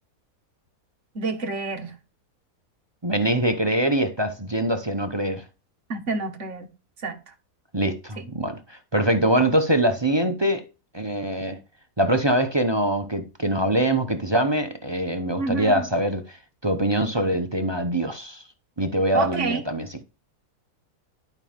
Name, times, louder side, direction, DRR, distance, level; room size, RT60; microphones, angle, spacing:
voice 1, 1.1-1.9 5.9-6.7 7.0-7.2 8.2-8.3 15.4-15.8 19.1-19.6, right 4 dB, 50° right, 1.8 m, -28 dB
voice 2, 3.0-5.4 7.7-10.6 10.9-11.6 12.0-16.4 16.6-18.4 18.8-20.0, right 1 dB, 25° right, 0.7 m, -23 dB
12.0 x 5.6 x 3.6 m
omnidirectional pair, 1.7 m